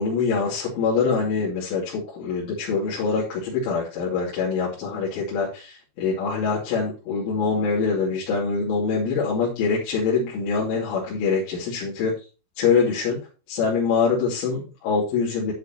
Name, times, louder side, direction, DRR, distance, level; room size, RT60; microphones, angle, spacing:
voice 1, 0.0-12.1 12.6-13.2 13.5-15.5, left 5 dB, 85° left, -6 dB, 5.3 m, -24 dB
11.5 x 9.2 x 2.9 m, 0.32 s
omnidirectional pair, 5.4 m